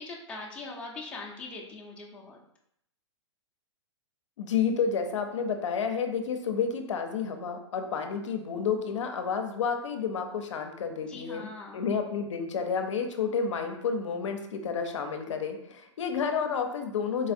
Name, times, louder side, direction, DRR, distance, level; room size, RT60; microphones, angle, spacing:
voice 1, 0.0-2.4 11.1-11.8, left 3 dB, 5° left, -4 dB, 0.5 m, -41 dB
voice 2, 4.4-11.5 11.7-17.3, left 6 dB, 80° left, 5 dB, 0.5 m, -30 dB
4.0 x 2.4 x 2.6 m, 0.76 s
hypercardioid pair, 130°, 15 cm